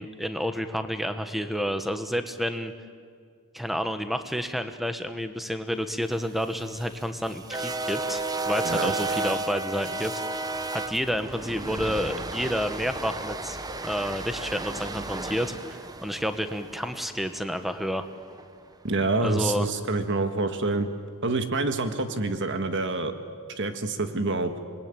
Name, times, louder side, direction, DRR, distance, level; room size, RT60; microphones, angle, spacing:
voice 1, 0.0-2.7 3.5-10.1 10.7-18.0 19.2-19.7, equal, ahead, 8 dB, 1.2 m, -30 dB
sound 1, 6.2-18.4, right 2 dB, 15° right, 0.9 m, -33 dB
voice 2, 18.8-20.9 21.2-23.1 23.6-24.5, right 2 dB, 55° right, 7 dB, 1.6 m, -27 dB
27.0 x 21.0 x 9.1 m, 2.1 s
head